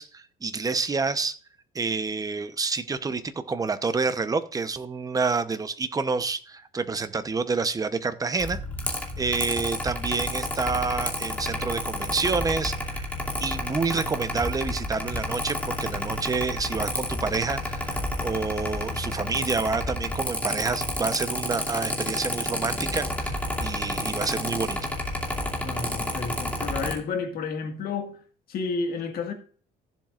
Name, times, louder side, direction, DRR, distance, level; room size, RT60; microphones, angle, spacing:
voice 1, 0.0-1.4 1.7-8.6 9.2-13.1 13.4-24.8, right 4 dB, 20° right, 0.9 m, -28 dB
Mechanical fan, 8.4-26.9, left 1 dB, 10° left, 2.6 m, -30 dB
voice 2, 25.6-28.2 28.5-29.3, left 4 dB, 65° left, 1.9 m, -31 dB
15.0 x 7.4 x 2.5 m
cardioid pair, 110°, 17 cm